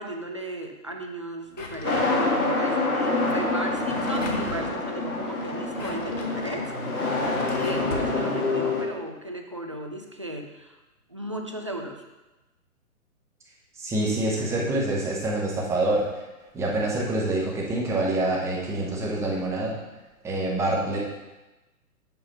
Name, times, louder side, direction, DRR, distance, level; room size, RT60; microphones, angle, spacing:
voice 1, 0.0-6.7 7.4-10.8 11.1-12.0, right 1 dB, 25° right, 3 dB, 0.3 m, -35 dB
Drawer open or close, 1.5-2.5 3.5-4.7 5.5-8.2, left 3 dB, 60° left, 1.4 m, -40 dB
sound 1, 1.8-8.8, left 2 dB, 75° left, 2.2 m, -26 dB
voice 2, 13.8-16.1 16.5-19.8 20.2-21.0, right 2 dB, 5° right, -3 dB, 0.9 m, -26 dB
7.7 x 5.5 x 5.2 m, 1.1 s
figure-of-eight pair, 125°, 43 cm